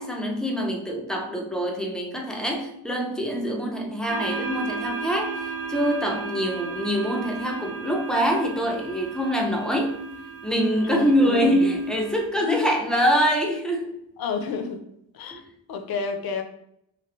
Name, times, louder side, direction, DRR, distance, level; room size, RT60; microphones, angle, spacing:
voice 1, 0.0-5.3 5.7-10.0 10.4-14.0 15.3-15.4, equal, ahead, 1 dB, 0.3 m, -24 dB
sound 1, 4.1-12.3, right 5 dB, 85° right, 0.9 m, -35 dB
voice 2, 10.8-11.7 12.4-12.8 14.2-14.8 15.1-15.4 15.7-16.4, left 5 dB, 55° left, 6 dB, 0.5 m, -30 dB
2.9 x 2.8 x 2.9 m, 0.77 s
wide cardioid pair, 140°, 43 cm